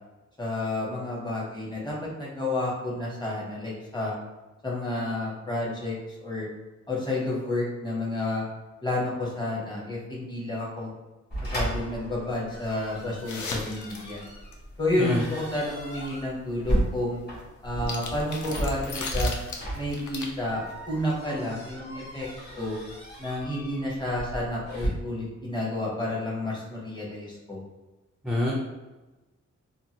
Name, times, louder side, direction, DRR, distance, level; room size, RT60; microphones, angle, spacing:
voice 1, 0.4-4.1 4.6-6.0 6.2-6.5 6.9-8.4 8.8-10.9 11.4-14.2 14.8-17.2 17.6-19.3 19.7-22.3 22.6-22.8 23.2-27.6, left 1 dB, 15° left, -5 dB, 0.9 m, -30 dB
sound 1, 11.3-24.9, right 1 dB, 35° left, 1.3 m, -34 dB
sound 2, 13.1-14.5 17.7-20.7 21.0-21.1, left 3 dB, 80° left, 0.5 m, -37 dB
voice 2, 15.0-15.2 28.2-28.5, left 1 dB, ahead, -4 dB, 0.4 m, -25 dB
2.7 x 2.3 x 2.8 m, 1.1 s
wide cardioid pair, 115°, 30 cm